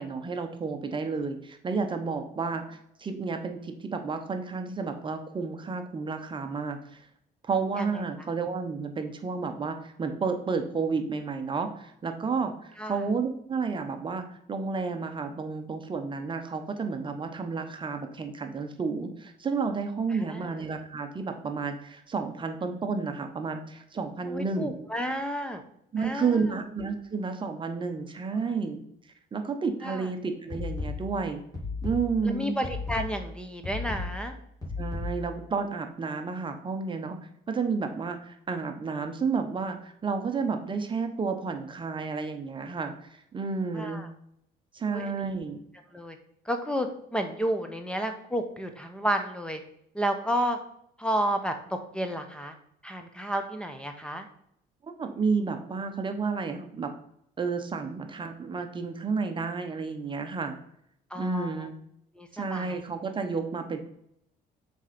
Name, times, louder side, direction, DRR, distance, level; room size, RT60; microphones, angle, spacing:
voice 1, 0.0-7.0 7.4-24.7 25.9-28.8 29.3-31.4 31.8-32.5 34.8-37.2 37.5-44.0 44.7-45.6 54.8-56.9 57.4-60.5 61.2-61.7 62.3-63.8, right 4 dB, 30° right, 6 dB, 0.9 m, -31 dB
voice 2, 20.1-20.5 24.3-25.6 26.0-26.4 28.3-28.5 29.8-30.1 32.2-34.3 43.7-44.1 44.9-45.3 45.9-46.2 46.4-49.6 49.9-50.6 51.0-52.5 52.8-54.3 61.1-61.7 62.1-62.8, equal, 5° left, 6 dB, 0.8 m, -31 dB
sound 1, 30.5-35.5, left 3 dB, 20° left, 3.1 m, -35 dB
6.4 x 4.3 x 5.1 m, 0.72 s
cardioid pair, 110°, 17 cm